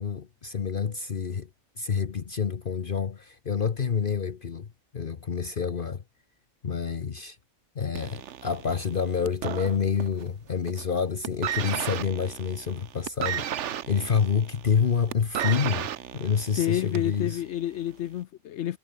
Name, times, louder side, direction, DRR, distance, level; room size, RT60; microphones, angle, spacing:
voice 1, 0.0-1.5 1.8-4.7 4.9-6.0 6.6-7.4 7.7-15.9 16.1-17.4, left 6 dB, 50° left, 1.1 m, -28 dB
sound 1, 8.0-10.3 10.6-10.9 11.2-17.2 18.0-18.1, right 10 dB, 75° right, 1.1 m, -34 dB
voice 2, 16.6-18.8, left 12 dB, 70° left, 0.9 m, -29 dB
omnidirectional pair, 1.2 m